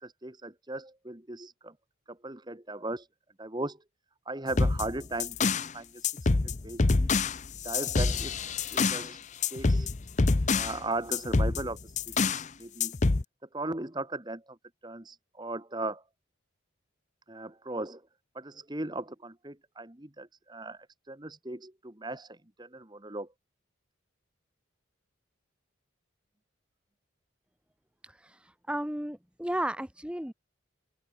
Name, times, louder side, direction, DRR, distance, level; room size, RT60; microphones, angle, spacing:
voice 1, 0.0-1.7 2.1-3.1 3.4-3.8 4.2-7.1 7.6-8.3 8.7-9.2 9.5-9.9 10.5-13.0 13.5-14.6 14.8-16.0 17.3-18.0 18.3-23.3, right 2 dB, 20° right, 1.4 m, -38 dB
sound 1, 4.5-5.7 6.0-9.1 9.4-10.8 11.1-12.5 12.8-13.2, left 3 dB, 35° left, 0.6 m, -26 dB
voice 2, 28.0-30.3, right 1 dB, 5° right, 1.1 m, -34 dB
open air
head